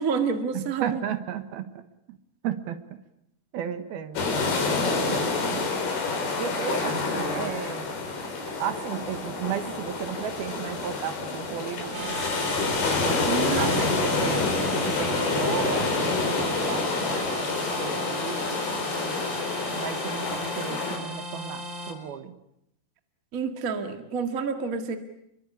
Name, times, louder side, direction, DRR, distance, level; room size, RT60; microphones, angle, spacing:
voice 1, 0.0-1.0 13.3-14.0 23.3-25.0, right 6 dB, 35° right, 6 dB, 1.4 m, -29 dB
voice 2, 0.5-2.2 2.4-2.8 3.5-4.6 5.1-5.7 6.4-8.0 8.5-12.2 12.8-19.2 19.7-22.4, right 9 dB, 75° right, 10 dB, 3.2 m, -34 dB
sound 1, 4.2-21.0, left 3 dB, 70° left, 6.0 m, -28 dB
sound 2, 11.9-21.9, right 1 dB, 55° right, 4.4 m, -36 dB
28.0 x 23.0 x 8.5 m, 0.78 s
omnidirectional pair, 4.7 m